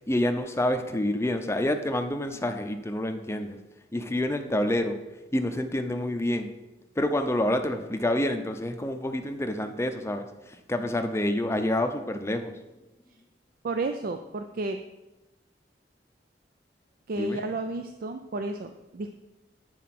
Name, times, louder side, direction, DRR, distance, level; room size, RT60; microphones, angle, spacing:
voice 1, 0.1-3.6 3.9-5.0 5.3-6.5 7.0-12.5 17.2-17.4, left 1 dB, 15° left, 7 dB, 0.6 m, -28 dB
voice 2, 13.6-14.8 17.1-19.1, right 2 dB, 55° right, 7 dB, 0.4 m, -32 dB
9.5 x 4.6 x 5.9 m, 1.0 s
head